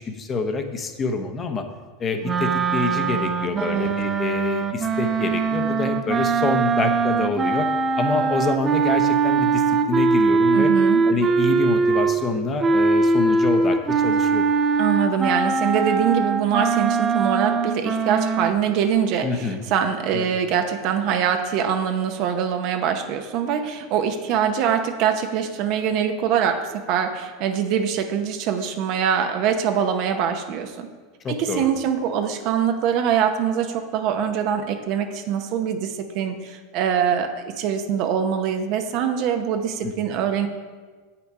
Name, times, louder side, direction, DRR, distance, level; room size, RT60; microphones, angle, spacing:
voice 1, 0.1-1.6 2.0-7.7 8.0-10.7 11.1-14.4 19.2-19.6 20.1-20.3 31.2-31.7 39.8-39.9, left 3 dB, 30° left, 6 dB, 0.8 m, -26 dB
sound 1, 2.2-12.3 12.6-18.5, right 4 dB, 25° right, 0.6 m, -21 dB
voice 2, 3.6-3.9 10.5-11.0 14.8-30.9 31.3-40.5, right 8 dB, 55° right, 7 dB, 0.8 m, -23 dB
7.9 x 5.9 x 4.8 m, 1.4 s
supercardioid pair, 120°, 0 cm